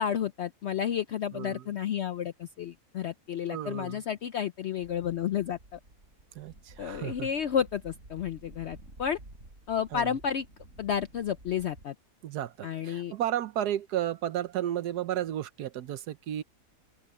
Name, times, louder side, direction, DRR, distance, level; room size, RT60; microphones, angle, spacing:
voice 1, 0.0-5.8 6.8-9.2 9.7-10.5 10.8-11.9 12.6-13.1, left 8 dB, 70° left, 0.6 m, -31 dB
voice 2, 1.3-1.7 3.5-4.0 6.3-7.3 9.9-10.1 12.2-16.4, right 11 dB, 80° right, 1.3 m, -33 dB
sound 1, 4.8-11.9, right 1 dB, 50° right, 6.5 m, -52 dB
omnidirectional pair, 1.7 m